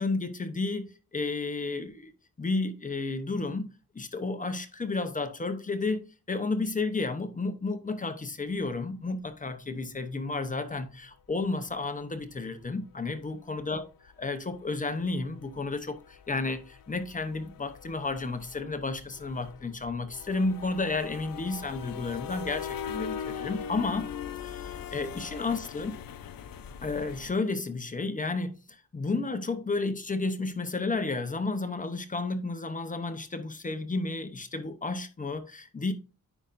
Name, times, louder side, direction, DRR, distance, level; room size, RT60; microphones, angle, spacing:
voice 1, 0.0-2.1 2.4-24.1 24.4-26.0 26.8-35.9, left 3 dB, 25° left, 0.7 m, -32 dB
sound 1, 12.6-12.8 13.2-13.3 13.6-13.8 14.1-14.2 14.5-27.3, left 8 dB, 75° left, 0.6 m, -41 dB
9.8 x 5.1 x 2.5 m
wide cardioid pair, 160°, 35 cm